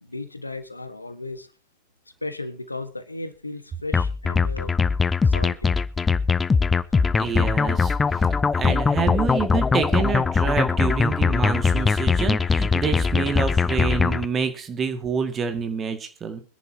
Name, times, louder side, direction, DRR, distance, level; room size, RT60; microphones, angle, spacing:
voice 1, 0.0-1.5 2.2-4.8 5.2-5.7, left 2 dB, 85° left, 11 dB, 1.4 m, -35 dB
sound 1, 3.9-14.2, left 5 dB, 15° left, 0.6 m, -21 dB
voice 2, 7.1-8.3 8.5-16.4, right 6 dB, 25° right, 7 dB, 2.0 m, -27 dB
24.5 x 10.5 x 2.8 m, 0.32 s
figure-of-eight pair, 90°, 0 cm